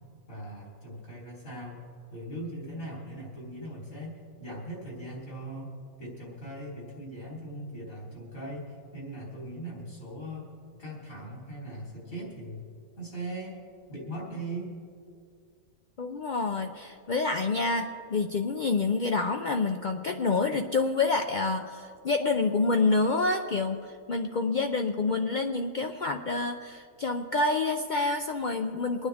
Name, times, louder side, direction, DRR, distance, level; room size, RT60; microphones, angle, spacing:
voice 1, 0.3-1.8 2.1-5.7 6.0-10.5 10.8-12.6 13.0-13.6 13.9-14.7, right 1 dB, 85° left, -5 dB, 4.1 m, -39 dB
voice 2, 16.0-29.1, left 3 dB, 55° left, 5 dB, 0.5 m, -28 dB
25.5 x 9.7 x 3.5 m, 2.3 s
omnidirectional pair, 1.4 m